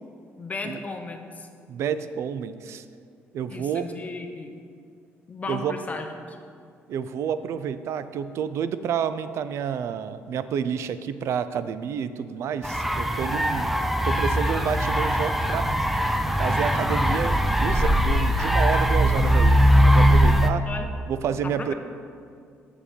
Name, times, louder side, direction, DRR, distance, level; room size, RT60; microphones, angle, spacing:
voice 1, 0.4-1.5 3.5-4.5 5.3-6.4 20.7-20.9 21.4-21.7, left 3 dB, 30° left, 5 dB, 0.8 m, -35 dB
voice 2, 1.7-2.9 3.3-3.9 5.5-5.8 6.9-13.7 14.0-16.0 16.4-20.7 21.1-21.7, right 8 dB, 65° right, 13 dB, 0.4 m, -29 dB
sound 1, 12.6-20.5, equal, 5° right, 0.5 m, -20 dB
7.0 x 6.9 x 4.4 m, 2.3 s
cardioid pair, 90°, 5 cm